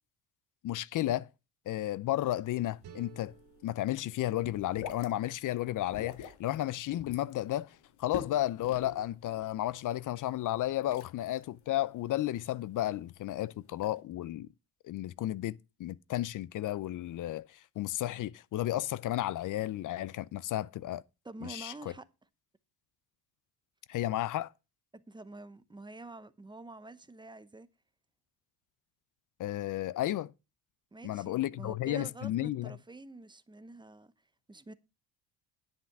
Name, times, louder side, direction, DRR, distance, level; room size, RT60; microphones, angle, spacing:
voice 1, 0.6-1.3 1.7-3.3 3.6-14.5 14.8-21.0 21.4-21.7 23.9-24.5 29.4-30.3 31.0-32.7, left 14 dB, 50° left, 0.5 m, -33 dB
sound 1, 2.2-14.0, left 8 dB, 75° left, 2.0 m, -49 dB
sound 2, 2.8-5.7, right 8 dB, 65° right, 3.3 m, -57 dB
voice 2, 21.2-22.1 24.9-27.7 30.9-34.1 34.5-34.7, right 2 dB, 10° right, 0.7 m, -47 dB
10.5 x 5.9 x 5.9 m
cardioid pair, 105°, 41 cm